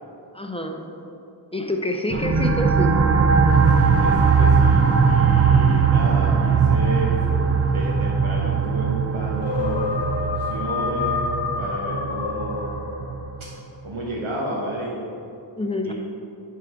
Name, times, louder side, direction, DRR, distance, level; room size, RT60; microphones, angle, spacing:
voice 1, 0.3-0.9 1.5-3.0 15.6-15.9, left 1 dB, 10° left, 3 dB, 0.6 m, -27 dB
sound 1, 2.1-13.4, right 5 dB, 35° right, 0.4 m, -20 dB
voice 2, 3.8-7.4 7.7-11.3 11.6-12.9 13.4-13.5 13.8-15.0 15.8-15.9, right 1 dB, 80° right, -5 dB, 1.1 m, -31 dB
sound 2, 9.3-13.4, left 5 dB, 65° left, 0.7 m, -29 dB
9.6 x 3.8 x 4.7 m, 2.7 s
wide cardioid pair, 55°, 47 cm